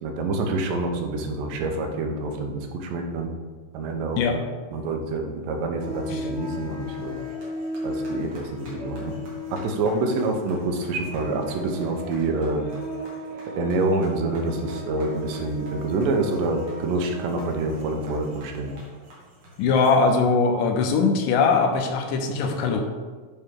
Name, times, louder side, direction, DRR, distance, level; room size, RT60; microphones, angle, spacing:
voice 1, 0.0-3.3 3.7-4.2 4.7-7.2 7.8-9.1 9.5-12.6 13.5-18.7, right 2 dB, 90° right, 3 dB, 2.5 m, -27 dB
sound 1, 5.8-20.0, equal, 55° right, 2.6 m, -36 dB
voice 2, 19.6-22.8, left 4 dB, 90° left, 4 dB, 2.4 m, -21 dB
8.5 x 4.0 x 3.7 m, 1.4 s
omnidirectional pair, 3.7 m